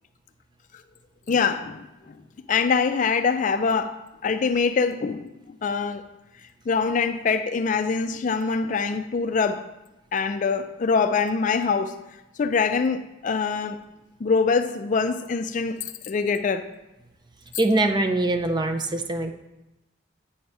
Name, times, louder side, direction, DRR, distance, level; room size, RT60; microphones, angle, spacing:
voice 1, 1.3-2.2 2.5-6.0 6.7-9.6 10.1-11.9 12.4-13.8 14.2-16.7, left 5 dB, 40° left, 0.4 m, -24 dB
voice 2, 17.6-19.3, right 2 dB, 20° right, 0.5 m, -23 dB
8.6 x 4.6 x 5.4 m
head